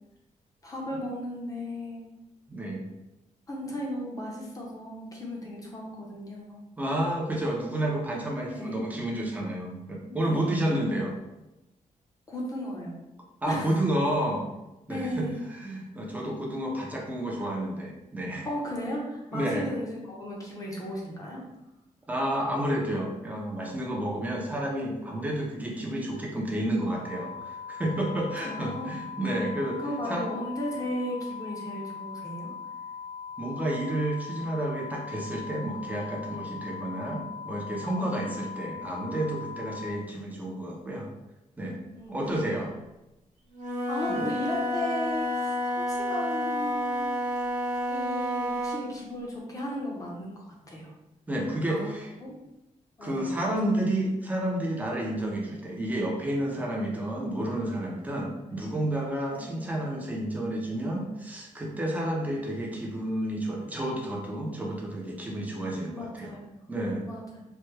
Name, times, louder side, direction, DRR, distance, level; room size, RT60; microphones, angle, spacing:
voice 1, 0.6-2.1 3.5-6.6 8.5-8.9 10.0-10.5 12.3-13.0 13.5-13.7 14.9-15.5 18.4-21.4 28.4-28.9 29.8-32.5 38.0-38.4 41.9-42.2 43.9-47.1 47.9-50.9 51.7-51.9 52.2-52.4 53.0-53.5 58.6-58.9 59.3-59.9 65.9-66.6 67.0-67.4, equal, 25° left, -2 dB, 0.7 m, -36 dB
voice 2, 2.5-2.9 6.8-11.1 13.4-14.5 14.9-18.5 19.3-19.7 22.1-29.8 30.1-30.2 33.4-41.1 41.6-41.8 42.1-42.7 44.1-44.3 51.3-52.1 53.0-66.3 66.7-67.0, right 1 dB, 10° right, -2 dB, 0.6 m, -30 dB
sound 1, 26.9-39.9, left 6 dB, 65° left, 0.5 m, -40 dB
Wind instrument woodwind instrument, 43.5-48.9, equal, 65° right, 0.6 m, -30 dB
3.2 x 2.1 x 3.2 m, 0.94 s
wide cardioid pair, 170°, 14 cm